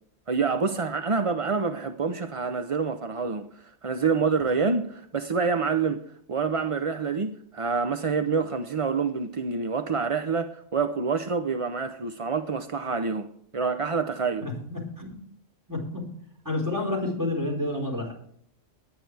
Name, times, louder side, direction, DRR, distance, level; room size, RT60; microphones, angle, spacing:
voice 1, 0.3-6.0 6.3-13.3 13.5-14.4, right 5 dB, 35° right, 0.5 m, -27 dB
voice 2, 14.4-15.2 15.7-16.1 16.4-18.1, left 2 dB, 15° right, 4.4 m, -29 dB
19.5 x 10.0 x 3.4 m
omnidirectional pair, 1.4 m